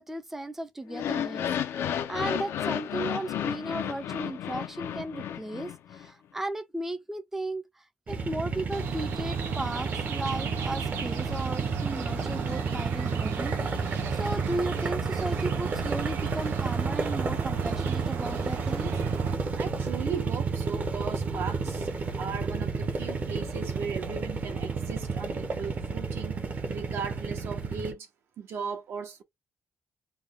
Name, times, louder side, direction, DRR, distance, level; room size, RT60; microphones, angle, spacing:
voice 1, 0.0-1.5 2.1-13.6 14.1-19.2, right 1 dB, 10° right, 0.5 m, -35 dB
sound 1, 0.9-6.1, left 9 dB, 80° left, 0.6 m, -32 dB
sound 2, 8.1-27.9, right 4 dB, 40° right, 0.8 m, -31 dB
sound 3, 8.7-19.4, right 8 dB, 90° right, 0.6 m, -38 dB
voice 2, 19.6-21.9 22.1-26.4 26.7-28.1 28.4-29.2, right 6 dB, 65° right, 1.0 m, -37 dB
3.3 x 2.2 x 3.5 m
cardioid pair, 135°, 4 cm